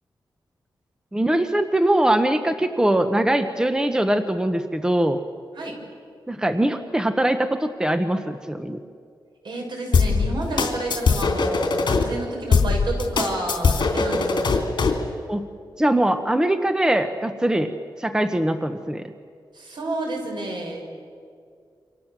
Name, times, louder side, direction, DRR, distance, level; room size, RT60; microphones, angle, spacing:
voice 1, 1.1-5.2 6.3-8.8 14.1-14.2 15.3-15.4 15.8-17.7 18.0-19.1, right 1 dB, 10° right, 8 dB, 1.0 m, -22 dB
voice 2, 9.4-14.6 19.5-20.9, right 2 dB, 70° right, 1 dB, 6.4 m, -30 dB
sound 1, 9.9-12.0 12.5-15.0, left 4 dB, 65° left, 3.4 m, -20 dB
28.5 x 25.5 x 7.5 m, 2.3 s
wide cardioid pair, 125°, 8 cm